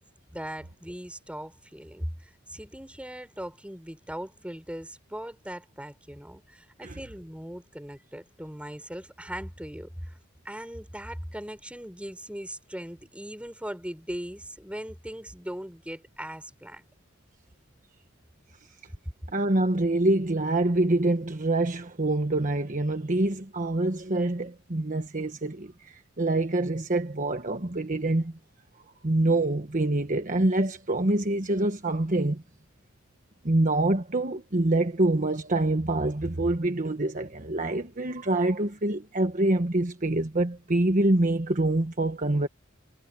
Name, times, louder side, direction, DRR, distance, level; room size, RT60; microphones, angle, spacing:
voice 1, 0.3-10.2 10.4-16.8, equal, 5° right, 5.9 m, -39 dB
voice 2, 19.3-28.3 29.0-32.4 33.4-42.5, right 2 dB, 40° right, 1.3 m, -25 dB
head